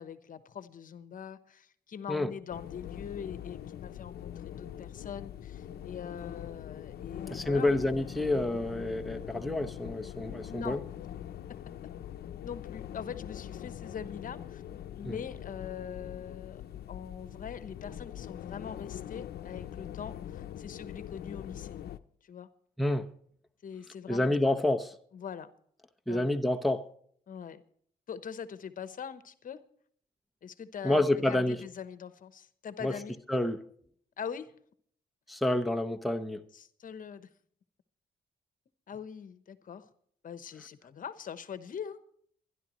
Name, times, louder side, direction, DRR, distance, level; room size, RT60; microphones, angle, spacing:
voice 1, 0.0-7.7 9.3-9.5 10.5-10.8 12.4-14.6 15.0-16.6 16.9-21.8 22.2-22.5 23.6-24.4 25.1-25.5 26.1-26.3 27.3-27.6 28.1-29.6 30.4-33.2 34.2-34.5 36.5-37.3 38.9-39.9 40.2-42.0, left 7 dB, 55° left, 0.9 m, -42 dB
sound 1, 2.5-22.0, left 10 dB, 75° left, 0.7 m, -43 dB
voice 2, 7.3-10.8 15.0-15.2 22.8-23.1 24.1-25.0 26.1-26.9 30.8-31.6 32.8-33.0 33.3-33.6 35.3-36.4, left 1 dB, ahead, 0.8 m, -28 dB
23.5 x 11.0 x 3.1 m
cardioid pair, 95°, 16 cm